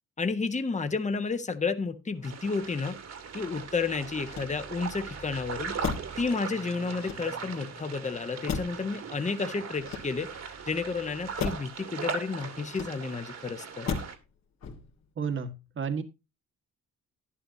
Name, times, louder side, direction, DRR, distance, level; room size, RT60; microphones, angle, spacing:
voice 1, 0.2-3.0 3.3-5.7 6.2-13.9, left 4 dB, 25° left, 8 dB, 1.3 m, -31 dB
sound 1, 2.1-11.6, right 3 dB, 10° right, 0.9 m, -52 dB
sound 2, 2.2-14.2, right 5 dB, 60° right, 2.2 m, -39 dB
Motor vehicle (road), 4.2-5.0 5.8-6.3 6.9-7.6 8.5-8.9 9.7-10.5 11.4-11.8 12.7-13.3 13.9-14.3 14.6-15.1, left 6 dB, 60° left, 2.6 m, -35 dB
voice 2, 15.1-16.0, right 6 dB, 40° right, 8 dB, 1.6 m, -32 dB
11.5 x 11.0 x 2.8 m, 0.27 s
cardioid pair, 90°, 30 cm